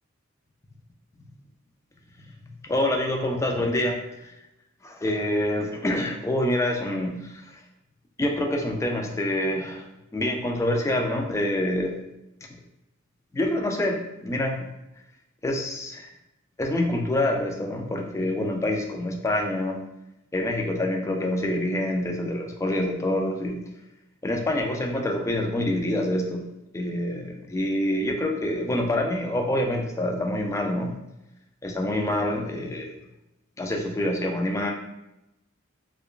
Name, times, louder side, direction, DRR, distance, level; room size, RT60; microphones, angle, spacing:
voice 1, 2.6-4.3 4.8-7.6 8.2-9.9 10.1-12.0 13.3-14.7 15.4-16.1 16.6-19.8 20.3-23.6 24.2-26.5 26.7-31.0 31.6-32.9 33.6-34.7, left 1 dB, 15° left, 2 dB, 0.3 m, -26 dB
4.9 x 2.2 x 2.4 m, 0.91 s
head